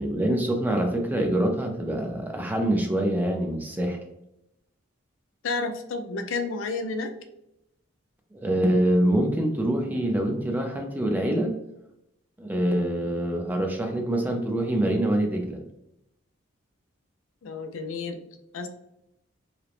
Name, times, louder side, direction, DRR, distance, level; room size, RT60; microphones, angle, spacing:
voice 1, 0.0-4.0 8.4-11.5 12.4-15.6, right 1 dB, 10° right, 2 dB, 0.3 m, -25 dB
voice 2, 5.4-7.1 17.4-18.2 18.5-18.7, left 3 dB, 85° left, 6 dB, 0.4 m, -30 dB
2.8 x 2.1 x 2.4 m, 0.83 s
head